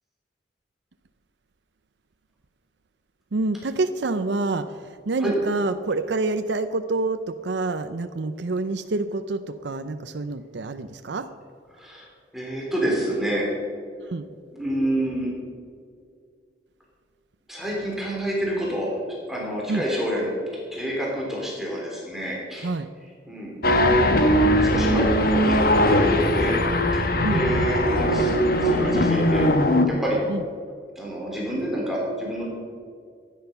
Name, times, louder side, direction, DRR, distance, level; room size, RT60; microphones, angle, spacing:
voice 1, 3.3-11.3 14.0-14.3 19.7-19.8 22.6-22.9 27.2-27.4 30.3-30.4, right 3 dB, 85° right, 10 dB, 0.6 m, -27 dB
voice 2, 11.7-12.1 12.3-13.5 14.5-15.3 17.5-18.9 19.3-20.3 20.7-22.7 23.3-23.5 24.6-26.6 26.9-28.3 28.6-29.5 29.8-30.2 30.9-32.5, right 1 dB, ahead, -4 dB, 3.2 m, -28 dB
sound 1, 23.6-29.9, equal, 55° left, 1.1 m, -20 dB
16.0 x 10.0 x 5.7 m, 2.2 s
head